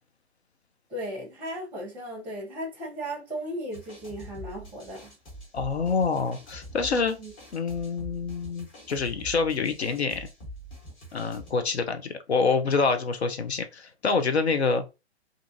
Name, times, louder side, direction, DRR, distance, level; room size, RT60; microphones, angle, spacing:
voice 1, 0.9-5.2 7.2-7.3, equal, 5° right, 0.7 m, -36 dB
sound 1, 3.7-11.5, equal, 30° left, 1.1 m, -44 dB
voice 2, 5.5-7.2 7.5-10.3 11.1-14.8, left 4 dB, 75° left, 0.6 m, -26 dB
2.6 x 2.4 x 2.5 m
figure-of-eight pair, 120°, 33 cm